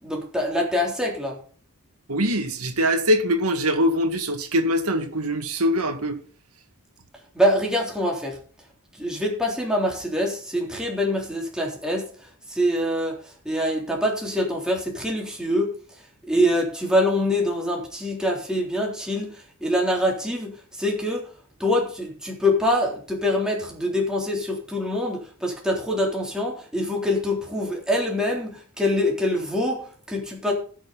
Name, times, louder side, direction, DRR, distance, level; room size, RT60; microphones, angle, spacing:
voice 1, 0.0-1.4 7.3-8.4 9.0-15.7 16.3-21.3 21.6-30.5, left 1 dB, 5° right, 3.5 m, -25 dB
voice 2, 2.1-6.2, equal, 80° right, 2.1 m, -23 dB
18.0 x 6.6 x 4.2 m
head